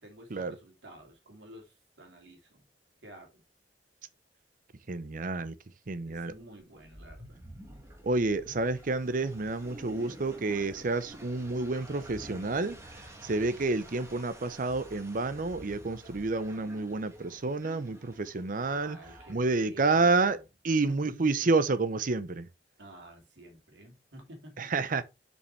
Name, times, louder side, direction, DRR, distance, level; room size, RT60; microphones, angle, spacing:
voice 1, 0.0-2.7 3.0-3.4 6.0-7.4 9.8-10.2 18.6-20.4 20.9-21.5 22.8-24.7, right 1 dB, 85° right, 2.7 m, -50 dB
voice 2, 4.9-5.5 5.9-6.3 8.0-12.8 13.2-19.0 19.3-20.4 20.6-22.5 24.6-25.0, right 3 dB, 50° right, 0.7 m, -29 dB
sound 1, 6.4-19.3, right 1 dB, 15° right, 1.8 m, -50 dB
7.1 x 5.5 x 3.2 m
head